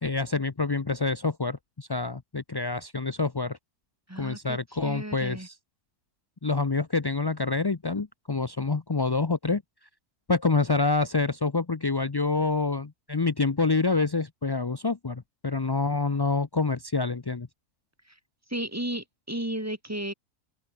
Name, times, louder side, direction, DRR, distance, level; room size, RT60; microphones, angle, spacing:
voice 1, 0.0-3.6 4.2-5.5 6.4-9.6 10.3-17.5, left 3 dB, 35° left, 0.3 m, -27 dB
voice 2, 4.1-5.5 18.1-18.2 18.5-20.1, right 1 dB, 10° right, 2.0 m, -34 dB
open air
omnidirectional pair, 1.7 m